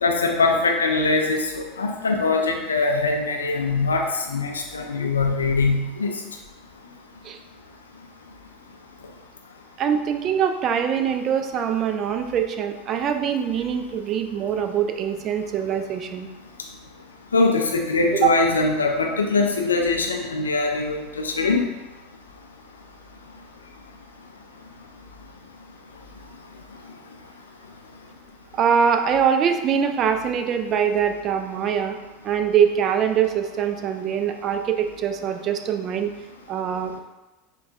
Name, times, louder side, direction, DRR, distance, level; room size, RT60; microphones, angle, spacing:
voice 1, 0.0-4.0 4.3-6.1 17.3-21.7, left 3 dB, 80° left, 2 dB, 0.4 m, -22 dB
voice 2, 9.8-16.3 18.1-18.3 28.5-32.0 32.2-36.1 36.5-37.0, right 8 dB, 40° right, 6 dB, 0.3 m, -23 dB
4.5 x 2.2 x 2.5 m, 1.1 s
figure-of-eight pair, 80°, 0 cm